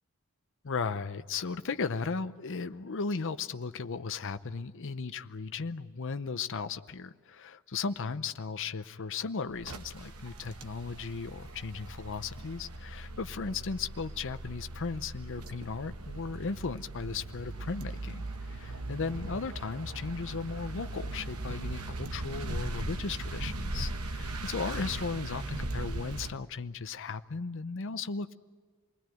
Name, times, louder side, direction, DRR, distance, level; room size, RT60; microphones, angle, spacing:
voice 1, 0.6-28.3, left 4 dB, 60° left, 10 dB, 0.7 m, -36 dB
sound 1, 9.5-26.3, right 2 dB, 90° right, 1.1 m, -39 dB
sound 2, 15.6-15.7 16.3-16.6 17.3-17.4 18.1-18.4 19.4-20.7, equal, 15° right, 7.6 m, -57 dB
27.5 x 20.5 x 9.1 m, 1.6 s
head